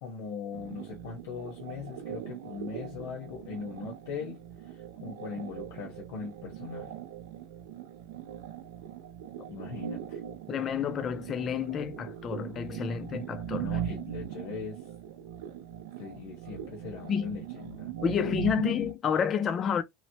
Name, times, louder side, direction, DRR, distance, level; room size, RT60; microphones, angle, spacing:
voice 1, 0.0-6.9 9.5-10.2 13.6-14.8 16.0-17.9, left 6 dB, 70° left, 1.1 m, -40 dB
sound 1, 0.5-18.9, right 10 dB, 70° right, 0.4 m, -40 dB
voice 2, 10.5-13.7 17.1-17.4 18.0-19.8, left 7 dB, 25° left, 0.4 m, -30 dB
3.1 x 2.1 x 2.7 m
supercardioid pair, 165°, 0 cm